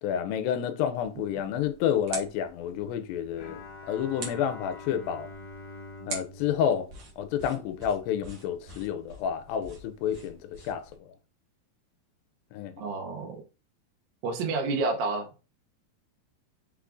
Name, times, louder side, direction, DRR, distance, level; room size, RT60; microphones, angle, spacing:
voice 1, 0.0-3.6 3.9-5.3 6.1-6.9 7.2-10.8 12.5-12.9, left 9 dB, 85° left, 2.3 m, -29 dB
sound 1, 1.0-11.0, right 3 dB, 60° right, 1.9 m, -45 dB
Bowed string instrument, 3.4-7.8, left 2 dB, 65° left, 1.8 m, -46 dB
voice 2, 12.8-13.4 14.2-15.3, right 3 dB, 80° right, 2.5 m, -29 dB
5.9 x 3.5 x 2.5 m
omnidirectional pair, 4.1 m